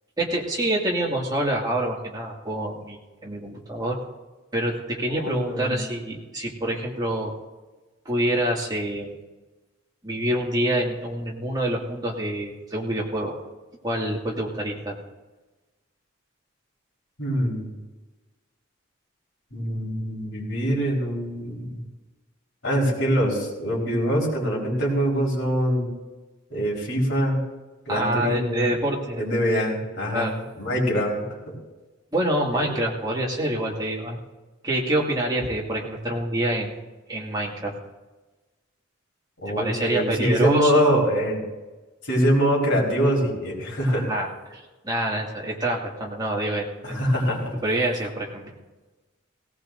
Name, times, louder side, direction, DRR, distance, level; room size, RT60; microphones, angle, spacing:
voice 1, 0.2-4.0 4.5-7.3 8.1-9.1 10.0-13.4 13.8-15.0 27.9-29.2 30.1-30.3 32.1-34.2 34.6-36.7 37.1-37.7 39.5-41.1 44.1-47.0 47.6-48.5, right 1 dB, 20° right, -2 dB, 2.1 m, -26 dB
voice 2, 5.1-5.7 17.2-17.7 19.5-21.8 22.6-25.9 26.5-27.4 27.9-28.7 29.2-31.5 32.5-32.8 39.4-41.4 42.0-44.1 46.8-47.5, equal, 60° left, -3 dB, 4.4 m, -24 dB
18.0 x 18.0 x 2.6 m, 1.2 s
head